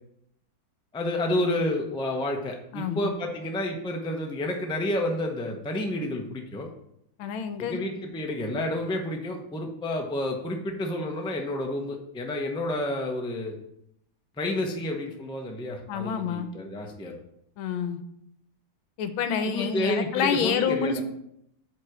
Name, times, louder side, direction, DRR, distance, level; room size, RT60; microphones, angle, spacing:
voice 1, 0.9-6.7 7.6-13.5 14.4-17.2 19.5-21.0, left 1 dB, 5° left, 2 dB, 0.5 m, -30 dB
voice 2, 2.7-3.1 7.2-7.8 15.9-16.5 17.6-18.0 19.0-21.0, left 7 dB, 85° left, 9 dB, 1.5 m, -28 dB
8.1 x 4.3 x 6.0 m, 0.76 s
omnidirectional pair, 2.2 m